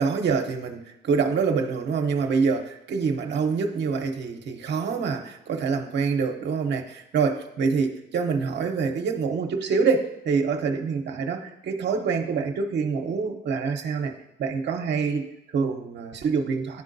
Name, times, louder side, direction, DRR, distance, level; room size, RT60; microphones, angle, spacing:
voice 1, 0.0-14.1 14.4-16.8, right 5 dB, 65° right, 4 dB, 0.7 m, -26 dB
11.0 x 3.7 x 2.6 m, 0.85 s
cardioid pair, 90°, 20 cm